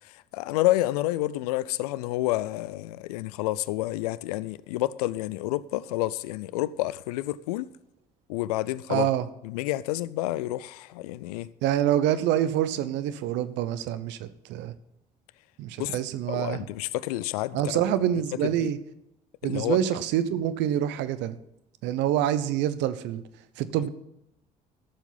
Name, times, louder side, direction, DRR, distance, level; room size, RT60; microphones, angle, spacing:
voice 1, 0.3-7.7 8.3-9.1 9.4-11.5 15.8-15.9 16.3-17.6 18.6-18.7 19.4-19.8, left 16 dB, 85° left, 0.4 m, -29 dB
voice 2, 8.9-9.3 11.6-14.7 15.6-16.6 17.5-18.8 19.4-21.4 21.8-23.2 23.6-23.9, right 11 dB, 70° right, 0.8 m, -26 dB
13.5 x 7.3 x 5.5 m
hypercardioid pair, 50°, 19 cm